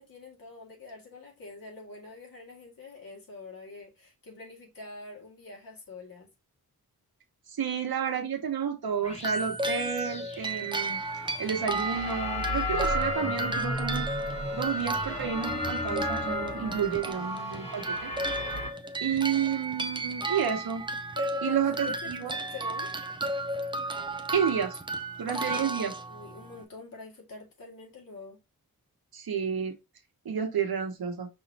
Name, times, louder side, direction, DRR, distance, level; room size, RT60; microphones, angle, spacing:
voice 1, 0.0-6.3 21.2-22.9 25.3-28.4, left 4 dB, 70° left, 2.2 m, -45 dB
voice 2, 7.5-11.0 11.4-14.1 14.5-18.1 18.4-18.5 19.0-20.8 21.4-22.3 24.3-24.8 25.2-25.9 29.1-29.7 30.2-31.3, right 7 dB, 80° right, 1.1 m, -30 dB
sound 1, 9.0-18.7, left 1 dB, 20° left, 1.5 m, -34 dB
sound 2, 9.2-26.6, right 2 dB, 15° right, 0.5 m, -34 dB
5.6 x 3.1 x 2.8 m
wide cardioid pair, 155°, 36 cm